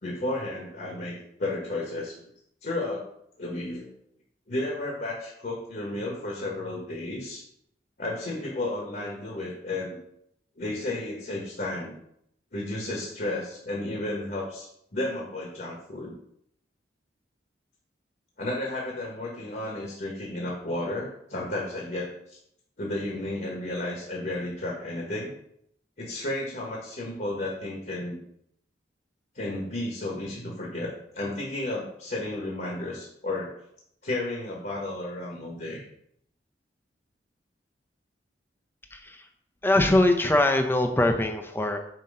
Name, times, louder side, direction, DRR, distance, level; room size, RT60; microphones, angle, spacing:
voice 1, 0.0-2.2 2.6-3.0 3.4-3.9 4.5-7.4 8.0-10.0 10.6-11.9 12.5-16.1 18.4-22.4 22.8-25.3 26.0-28.2 29.3-33.6 34.0-35.8, left 2 dB, 55° left, -2 dB, 1.3 m, -33 dB
voice 2, 38.9-39.2 39.6-41.8, left 1 dB, 15° left, 5 dB, 0.6 m, -22 dB
7.5 x 2.9 x 5.4 m, 0.72 s
head